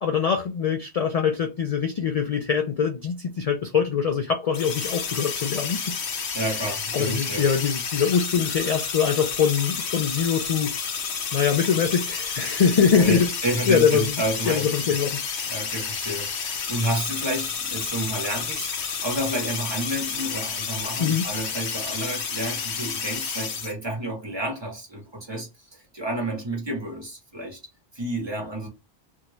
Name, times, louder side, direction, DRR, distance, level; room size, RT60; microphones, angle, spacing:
voice 1, 0.0-6.0 6.9-10.7 11.3-13.3 13.7-14.1 14.5-15.5 21.0-21.3, left 7 dB, 60° left, 0.4 m, -23 dB
sound 1, 4.5-23.7, left 6 dB, 80° left, 1.0 m, -30 dB
voice 2, 6.3-7.4 12.9-15.0 15.5-27.6 27.9-28.7, right 1 dB, 25° right, 1.0 m, -30 dB
2.7 x 2.3 x 3.0 m
omnidirectional pair, 1.1 m